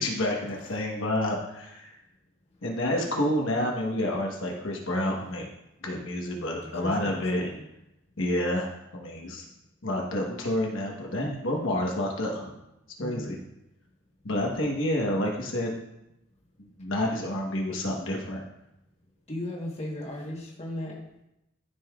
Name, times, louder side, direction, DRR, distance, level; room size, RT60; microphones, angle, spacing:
voice 1, 0.0-2.0 2.6-5.5 5.8-7.4 8.2-9.4 9.8-12.5 13.0-13.4 14.2-15.7 16.6-18.4, left 1 dB, 60° left, -1 dB, 1.2 m, -29 dB
voice 2, 6.7-7.6 13.0-13.3 19.3-21.2, left 1 dB, 30° left, -2 dB, 1.3 m, -37 dB
13.0 x 5.5 x 2.4 m, 0.86 s
head